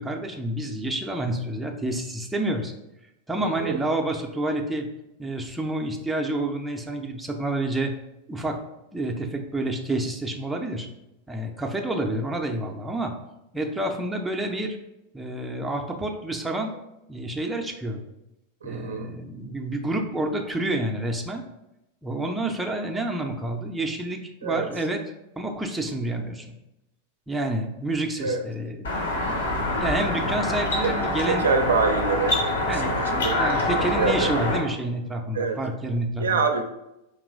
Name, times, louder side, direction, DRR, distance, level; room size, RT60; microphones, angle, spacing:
voice 1, 0.0-2.7 3.3-4.9 5.2-7.9 8.3-8.6 8.9-10.9 11.3-13.1 13.5-14.8 15.1-16.7 17.1-18.1 18.6-21.4 22.0-25.0 25.4-26.5 27.3-31.5 32.7-36.4, right 1 dB, 5° right, 2 dB, 0.4 m, -29 dB
voice 2, 3.4-3.8 18.6-19.1 24.4-24.7 28.2-28.4 30.8-30.9 31.3-32.4 32.8-33.4 33.7-34.3 35.3-35.6 36.2-36.6, right 4 dB, 70° right, 4 dB, 0.4 m, -25 dB
sound 1, 28.8-34.6, left 1 dB, 65° left, 1.0 m, -25 dB
4.2 x 2.9 x 2.5 m, 0.90 s
figure-of-eight pair, 90°, 0 cm